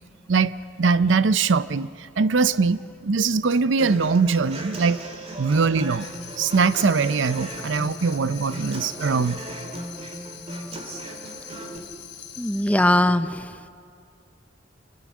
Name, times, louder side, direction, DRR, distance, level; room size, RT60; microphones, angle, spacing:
voice 1, 0.8-1.9 2.2-5.0 5.4-6.1 6.4-9.4, right 4 dB, 80° right, 15 dB, 0.6 m, -21 dB
Human voice / Acoustic guitar, 3.8-11.8, right 1 dB, 35° right, 2.4 m, -37 dB
Tambourine, 5.8-12.9, left 10 dB, 60° left, 3.1 m, -43 dB
voice 2, 12.4-13.7, left 1 dB, 10° left, 11 dB, 0.6 m, -21 dB
25.5 x 22.5 x 6.3 m, 2.4 s
head